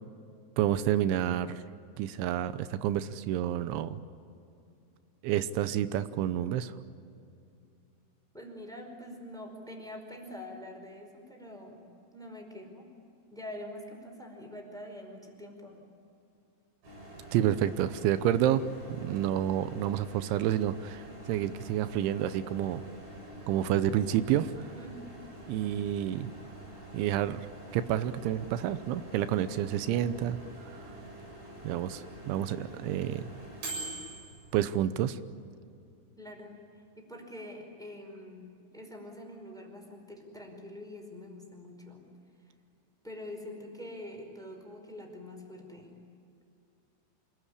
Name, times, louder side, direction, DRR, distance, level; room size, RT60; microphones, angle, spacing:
voice 1, 0.6-1.6 2.0-4.0 5.2-6.7 17.3-18.6 18.9-22.8 23.5-24.5 25.5-26.3 26.9-27.5 27.7-30.4 31.6-33.3 34.5-35.2, right 11 dB, 85° right, 13 dB, 3.2 m, -29 dB
voice 2, 8.3-11.8 12.1-12.9 13.3-15.8 24.8-25.2 36.2-42.1 43.0-45.9, left 1 dB, ahead, 2 dB, 4.3 m, -45 dB
Microwave oven, 16.8-34.6, right 1 dB, 65° right, 9.9 m, -46 dB
27.0 x 22.0 x 9.9 m, 2.6 s
omnidirectional pair, 5.3 m